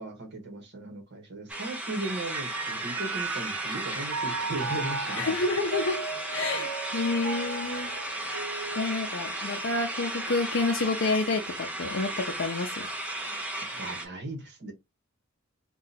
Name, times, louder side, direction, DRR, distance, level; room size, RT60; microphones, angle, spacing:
voice 1, 0.0-5.2 13.6-14.7, right 2 dB, 55° right, 1.1 m, -37 dB
sound 1, 1.5-14.1, right 1 dB, 5° right, 0.5 m, -35 dB
Mallet percussion, 2.0-9.8, right 4 dB, 85° right, 0.6 m, -36 dB
voice 2, 5.2-6.0 6.3-7.9 8.7-12.7, left 3 dB, 60° left, 0.5 m, -29 dB
2.8 x 2.3 x 4.0 m
head